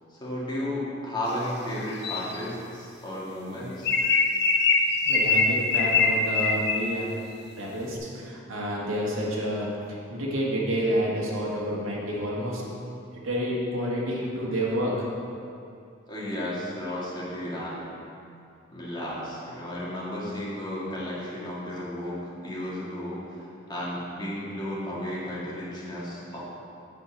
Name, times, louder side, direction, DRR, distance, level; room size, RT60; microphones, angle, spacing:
voice 1, 0.1-3.9 16.1-18.0 18.7-26.4, left 1 dB, 20° left, -7 dB, 2.0 m, -33 dB
sound 1, 2.0-2.4 3.8-7.0, left 4 dB, 55° left, 0.6 m, -23 dB
voice 2, 5.0-7.1 7.6-12.6 13.2-15.1, equal, 80° right, -4 dB, 1.7 m, -29 dB
8.6 x 4.5 x 7.1 m, 2.5 s
head